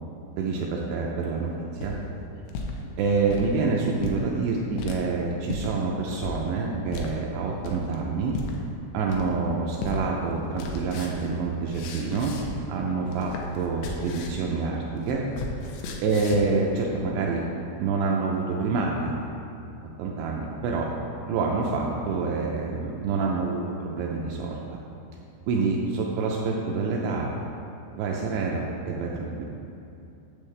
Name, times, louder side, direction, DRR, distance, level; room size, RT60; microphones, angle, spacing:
voice 1, 0.4-2.0 3.0-8.4 8.9-12.4 12.7-15.3 16.0-17.4 17.8-19.2 20.0-20.9 21.2-24.6 25.5-27.3 27.9-29.4, right 4 dB, 85° right, -2 dB, 2.4 m, -27 dB
sound 1, 1.5-2.8 3.2-3.5 4.0-4.2 4.8-5.0 5.5-5.7 6.2-6.4 6.9-7.1 7.6-7.9 8.3-8.5 9.1-9.5 9.8-10.0 10.3-12.7 13.0-14.5 14.7-16.6, left 3 dB, 90° left, 2.4 m, -35 dB
10.5 x 7.1 x 3.3 m, 2.7 s
omnidirectional pair, 5.6 m